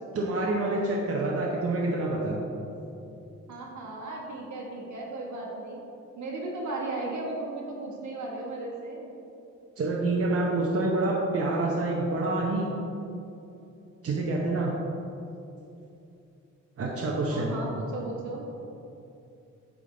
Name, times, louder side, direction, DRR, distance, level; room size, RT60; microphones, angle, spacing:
voice 1, 0.1-2.4 9.8-12.7 14.0-14.7 16.8-17.5, right 2 dB, 50° right, -3 dB, 0.8 m, -27 dB
voice 2, 3.5-5.8 6.1-9.1 17.3-18.4, right 2 dB, 75° right, -2 dB, 1.4 m, -36 dB
8.5 x 3.7 x 3.8 m, 2.7 s
cardioid pair, 100°, 30 cm